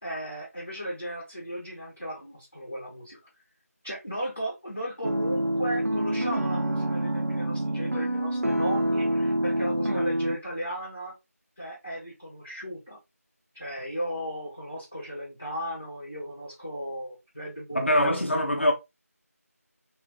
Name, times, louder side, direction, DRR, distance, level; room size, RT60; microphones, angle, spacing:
voice 1, 0.0-3.2 3.8-11.1 11.6-13.0 13.5-18.2, equal, 5° right, 0.8 m, -36 dB
sound 1, 5.0-10.4, right 1 dB, 60° right, 0.5 m, -27 dB
voice 2, 17.7-18.7, left 1 dB, 45° left, 0.7 m, -23 dB
3.1 x 2.9 x 2.9 m
figure-of-eight pair, 175°, 9 cm